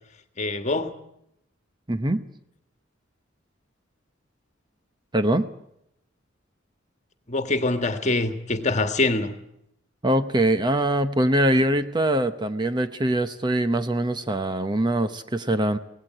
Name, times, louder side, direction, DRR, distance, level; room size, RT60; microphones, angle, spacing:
voice 1, 0.4-0.9 7.3-9.3, left 2 dB, 35° left, 8 dB, 1.7 m, -24 dB
voice 2, 1.9-2.2 5.1-5.5 10.0-15.8, right 1 dB, 20° right, 10 dB, 0.8 m, -23 dB
18.0 x 17.0 x 9.7 m, 0.76 s
head